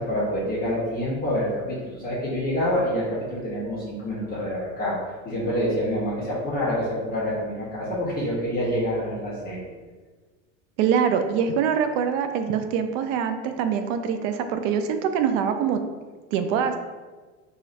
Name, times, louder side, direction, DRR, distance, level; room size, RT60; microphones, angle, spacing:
voice 1, 0.0-9.7, equal, 20° left, -8 dB, 1.2 m, -27 dB
voice 2, 10.8-15.8 16.3-16.8, right 7 dB, 60° right, 8 dB, 0.5 m, -24 dB
4.7 x 3.2 x 2.7 m, 1.3 s
supercardioid pair, 110°, 43 cm